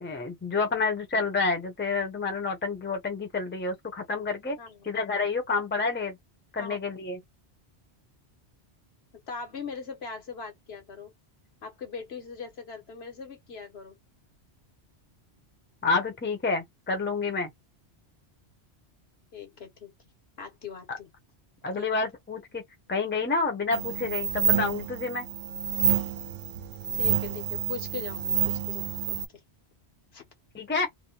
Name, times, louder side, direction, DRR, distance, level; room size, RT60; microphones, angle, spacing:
voice 1, 0.0-4.6 4.9-6.2 6.5-7.2 15.8-17.5 20.9-21.0 21.6-22.6 22.9-25.3 30.5-30.9, left 4 dB, 10° left, 0.6 m, -29 dB
voice 2, 9.3-11.1 11.6-14.0 19.3-19.9 20.4-21.1 21.7-21.9 26.9-29.2 30.1-30.2, left 5 dB, 70° left, 1.2 m, -40 dB
sound 1, 23.7-29.3, right 8 dB, 75° right, 0.8 m, -28 dB
2.6 x 2.1 x 2.9 m
omnidirectional pair, 1.1 m